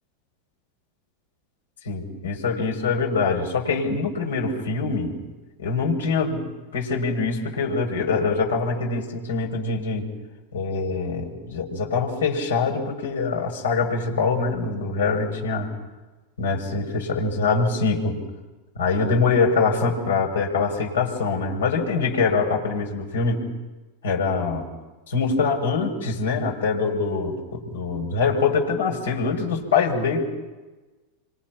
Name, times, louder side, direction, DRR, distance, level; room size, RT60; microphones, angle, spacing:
voice 1, 1.8-5.2 5.6-10.1 10.5-15.7 16.4-18.2 18.8-23.4 24.0-24.6 25.1-30.2, left 4 dB, 90° left, 1 dB, 6.0 m, -24 dB
30.0 x 24.5 x 6.0 m, 1.2 s
hypercardioid pair, 105°, 0 cm